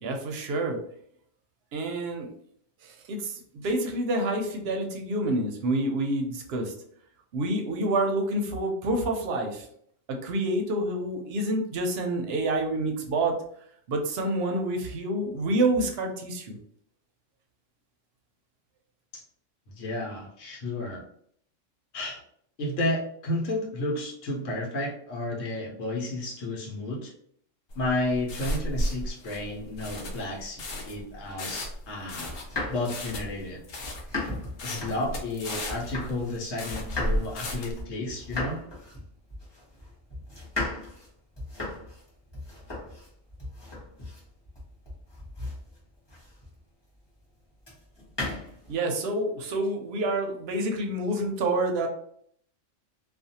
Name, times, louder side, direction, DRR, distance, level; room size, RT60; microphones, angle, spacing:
voice 1, 0.0-0.8 1.7-2.3 2.8-6.7 7.3-9.7 10.1-13.4 13.9-16.6 48.7-51.9, right 1 dB, 65° right, 3 dB, 0.7 m, -28 dB
voice 2, 19.8-21.0 21.9-22.2 22.6-27.1 27.8-32.3 32.7-33.6 34.6-38.6, left 1 dB, 85° left, -2 dB, 1.1 m, -32 dB
sound 1, 27.7-37.8, equal, 60° left, 0.7 m, -34 dB
sound 2, 32.3-36.4 36.7-46.6 47.6-48.8, left 2 dB, 25° left, 0.9 m, -37 dB
2.4 x 2.3 x 2.7 m, 0.65 s
omnidirectional pair, 1.3 m